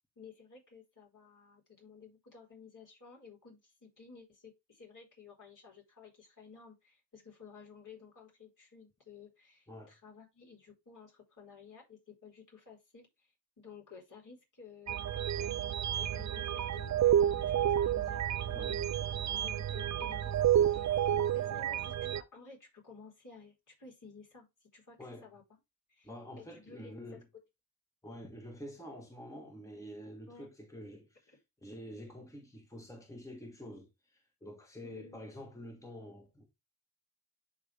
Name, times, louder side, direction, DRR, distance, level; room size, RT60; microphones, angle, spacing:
voice 1, 0.2-13.3 13.6-15.5 16.0-18.2 18.7-18.8 19.3-25.0 25.2-25.4 25.9-27.2 30.3-30.5 31.3-31.4 34.8-35.3, left 5 dB, 50° left, 4.2 m, -54 dB
sound 1, 14.9-22.2, right 10 dB, 45° right, 0.5 m, -30 dB
voice 2, 26.0-27.2 28.0-36.5, equal, 10° left, 1.6 m, -48 dB
11.0 x 3.6 x 3.4 m
cardioid pair, 70°, 40 cm